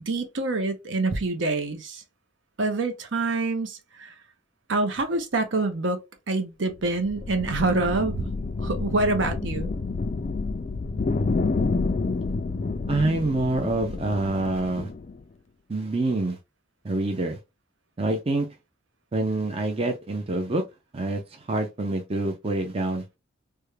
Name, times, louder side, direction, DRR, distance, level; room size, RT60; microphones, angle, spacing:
voice 1, 0.0-2.0 2.6-4.1 4.7-6.0 6.3-8.3 8.6-9.7, right 3 dB, 60° right, 0.7 m, -26 dB
sound 1, 6.7-15.2, left 3 dB, 35° left, 0.3 m, -29 dB
voice 2, 12.9-14.9 15.7-16.4 16.8-17.4 18.0-18.5 19.1-20.6 20.9-23.0, right 2 dB, 30° right, 0.5 m, -26 dB
3.4 x 2.2 x 3.2 m
head